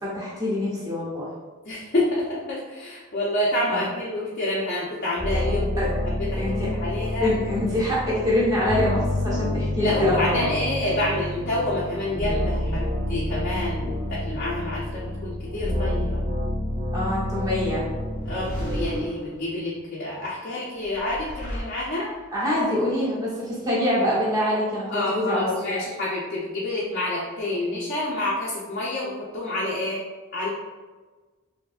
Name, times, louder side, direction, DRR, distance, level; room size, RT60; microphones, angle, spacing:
voice 1, 0.0-1.3 3.7-3.8 5.8-5.9 6.4-6.7 7.2-10.5 16.9-17.9 22.3-25.6, left 1 dB, 15° right, -7 dB, 0.9 m, -25 dB
voice 2, 1.7-7.3 8.1-8.2 9.8-16.2 18.2-22.1 24.9-30.0 30.3-30.5, left 1 dB, 45° left, -7 dB, 0.5 m, -28 dB
sound 1, 5.2-19.0, left 1 dB, 45° right, 0.8 m, -28 dB
sound 2, 17.9-19.8 20.8-22.3, equal, 80° right, 1.4 m, -34 dB
3.4 x 2.6 x 2.4 m, 1.3 s
head